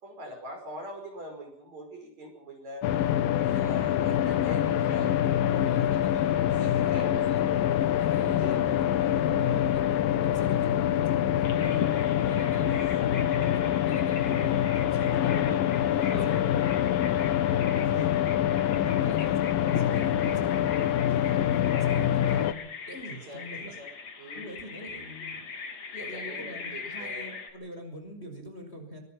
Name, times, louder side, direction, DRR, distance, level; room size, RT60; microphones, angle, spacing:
voice 1, 0.0-2.9 3.2-7.3 8.4-8.6 9.3-9.6 11.6-12.6 15.0-16.6 17.9-18.1 20.6-21.0 23.1-23.9 24.2-24.5 26.0-27.4, right 1 dB, 45° right, 4 dB, 6.8 m, -43 dB
sound 1, 2.8-22.5, left 11 dB, 75° left, 2.8 m, -25 dB
voice 2, 3.5-3.9 4.6-5.0 5.7-6.2 6.8-7.7 8.0-9.8 10.2-11.8 12.2-15.4 16.0-16.9 17.7-20.7 21.1-22.6 22.9-23.7 24.3-29.0, right 1 dB, 15° left, 4 dB, 5.3 m, -43 dB
Bird vocalization bird call bird song, 11.4-27.5, left 5 dB, 45° left, 3.9 m, -40 dB
24.0 x 22.5 x 5.9 m, 0.64 s
omnidirectional pair, 4.3 m